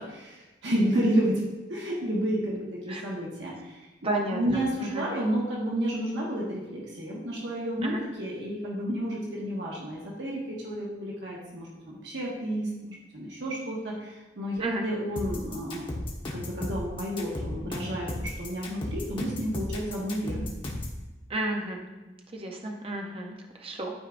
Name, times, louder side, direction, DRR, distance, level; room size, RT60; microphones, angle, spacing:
voice 1, 0.0-1.4 1.7-15.9 16.3-20.5, equal, 75° right, -4 dB, 1.3 m, -31 dB
voice 2, 4.0-5.0 7.8-8.0 14.6-14.8 21.3-21.8 22.1-23.9, right 1 dB, 30° right, 1 dB, 0.8 m, -32 dB
sound 1, 15.2-21.0, left 1 dB, 30° left, 1.3 m, -34 dB
12.0 x 4.6 x 2.5 m, 1.1 s
head